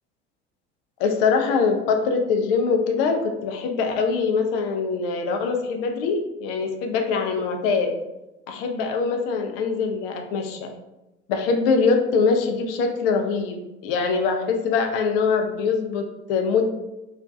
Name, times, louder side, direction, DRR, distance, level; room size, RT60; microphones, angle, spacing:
voice 1, 1.0-7.9 8.5-10.7 11.3-13.6 13.8-16.6, left 5 dB, 55° left, 4 dB, 0.5 m, -23 dB
2.4 x 2.2 x 2.4 m, 0.97 s
figure-of-eight pair, 70°, 35 cm